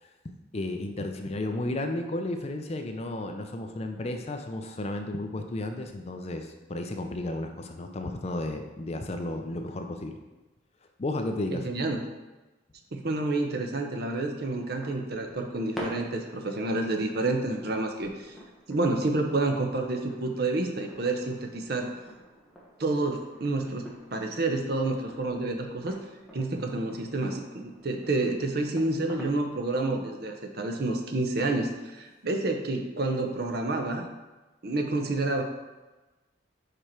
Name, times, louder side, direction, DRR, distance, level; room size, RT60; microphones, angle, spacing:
voice 1, 0.2-10.2 11.0-11.6 26.6-26.7, left 2 dB, 35° left, 5 dB, 0.5 m, -33 dB
voice 2, 11.5-12.0 12.9-18.3 18.7-21.9 22.8-26.0 26.3-34.1 34.6-35.4, right 2 dB, 50° right, 3 dB, 0.7 m, -29 dB
sound 1, 14.6-29.6, equal, ahead, 0.9 m, -47 dB
5.1 x 4.6 x 4.3 m, 1.2 s
head